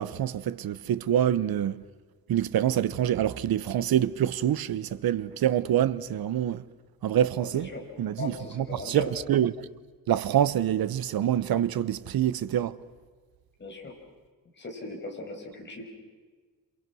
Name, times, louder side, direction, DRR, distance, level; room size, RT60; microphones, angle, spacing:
voice 1, 0.0-1.8 2.3-6.6 7.0-7.7 8.0-9.5 10.1-12.8, right 11 dB, 85° right, 1.0 m, -26 dB
voice 2, 7.4-7.8 8.2-9.1 13.6-13.9 14.6-15.8, left 2 dB, 30° left, 6.3 m, -38 dB
28.0 x 28.0 x 6.3 m
wide cardioid pair, 145°, 35 cm